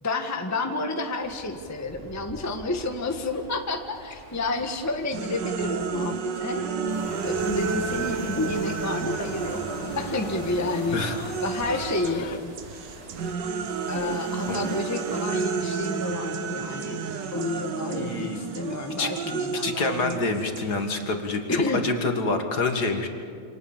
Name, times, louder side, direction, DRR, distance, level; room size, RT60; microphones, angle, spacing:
voice 1, 0.0-6.7 7.2-9.6 10.0-11.0 11.4-12.5 13.9-17.0 17.3-20.3 21.5-21.8, left 2 dB, 10° left, 4 dB, 1.3 m, -30 dB
sound 1, 1.2-16.1, right 1 dB, 15° right, 4.9 m, -47 dB
sound 2, 5.1-12.2 12.5-21.1, right 6 dB, 60° right, 1.6 m, -31 dB
sound 3, 6.9-12.4, left 9 dB, 85° left, 1.9 m, -41 dB
voice 2, 18.0-18.4 19.0-19.1 19.6-23.1, left 3 dB, 50° left, 5 dB, 2.3 m, -27 dB
28.0 x 27.0 x 7.3 m, 2.3 s
omnidirectional pair, 2.4 m